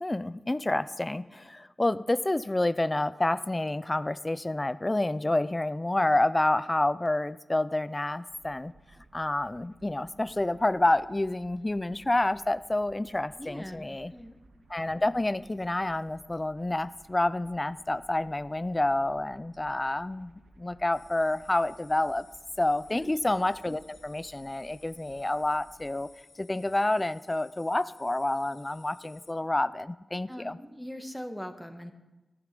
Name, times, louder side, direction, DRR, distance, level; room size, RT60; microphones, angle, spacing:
voice 1, 0.0-8.7 9.1-14.1 14.7-22.2 22.6-26.1 26.4-30.6, left 2 dB, 20° left, 16 dB, 0.5 m, -28 dB
sound 1, 8.3-26.0, right 2 dB, 85° right, 1.6 m, -58 dB
voice 2, 13.4-14.3 22.9-23.2 30.3-31.9, equal, 5° left, 6 dB, 1.4 m, -41 dB
sound 2, 20.9-29.3, left 4 dB, 85° left, 1.3 m, -59 dB
14.5 x 11.5 x 5.3 m, 1.1 s
wide cardioid pair, 75°, 0 cm